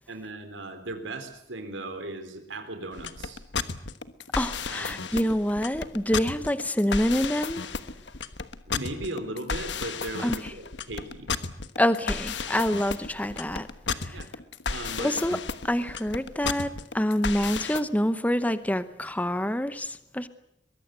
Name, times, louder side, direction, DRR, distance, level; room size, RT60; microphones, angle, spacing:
voice 1, 0.1-3.4 4.7-5.0 8.7-11.3 14.1-14.3 14.7-15.2, right 2 dB, 85° right, 3.8 m, -37 dB
sound 1, 2.9-17.8, left 5 dB, 70° left, 1.3 m, -33 dB
voice 2, 4.4-7.6 10.2-10.4 11.8-13.7 13.9-14.2 15.0-15.4 15.6-20.3, equal, 10° left, 0.9 m, -26 dB
23.0 x 21.5 x 8.1 m
head